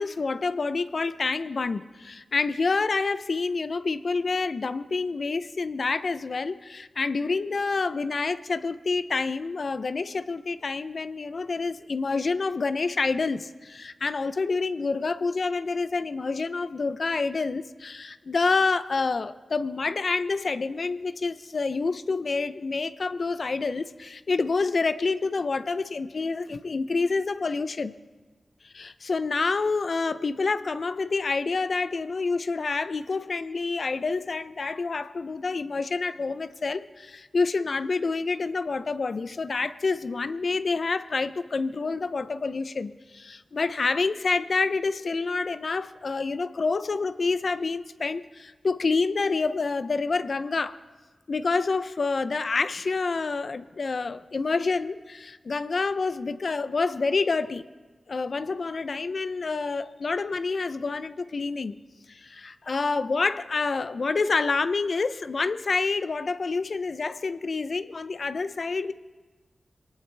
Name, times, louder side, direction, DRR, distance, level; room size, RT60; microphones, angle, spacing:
voice 1, 0.0-27.9 28.6-50.8 51.3-57.7 58.1-61.8 62.1-68.9, left 4 dB, 65° left, 12 dB, 0.5 m, -28 dB
22.5 x 18.5 x 3.3 m, 1.3 s
cardioid pair, 65°, 0 cm